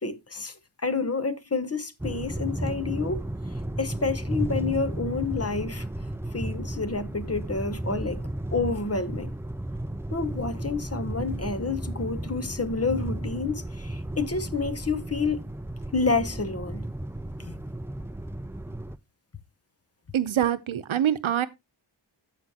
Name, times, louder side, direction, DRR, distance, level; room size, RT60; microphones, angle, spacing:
voice 1, 0.0-3.2 3.8-5.9 6.3-8.2 8.5-9.3 10.1-15.4 15.9-16.8 17.4-17.5, left 4 dB, 30° left, 1.0 m, -29 dB
sound 1, 2.0-19.0, right 1 dB, 5° right, 0.4 m, -34 dB
voice 2, 20.1-21.5, right 10 dB, 90° right, 0.8 m, -25 dB
15.0 x 5.0 x 2.8 m
wide cardioid pair, 80°, 46 cm